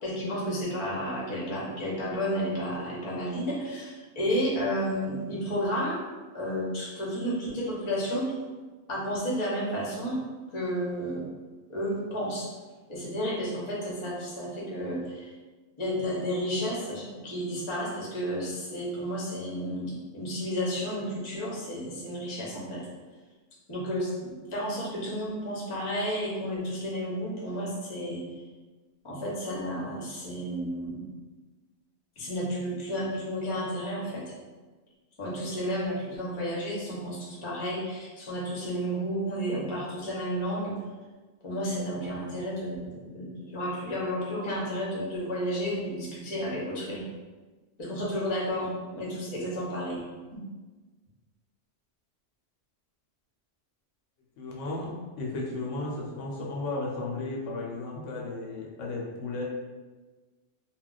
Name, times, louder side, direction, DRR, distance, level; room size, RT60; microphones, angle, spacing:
voice 1, 0.0-6.0 6.3-8.3 8.9-10.2 10.5-11.2 11.7-12.5 12.9-15.3 15.8-22.8 23.7-28.2 29.0-31.0 32.2-34.2 35.2-40.7 41.4-47.1 47.8-50.0, equal, 30° left, -5 dB, 0.7 m, -32 dB
voice 2, 54.4-59.4, left 2 dB, 75° left, -3 dB, 0.9 m, -34 dB
2.3 x 2.1 x 3.8 m, 1.3 s
omnidirectional pair, 1.3 m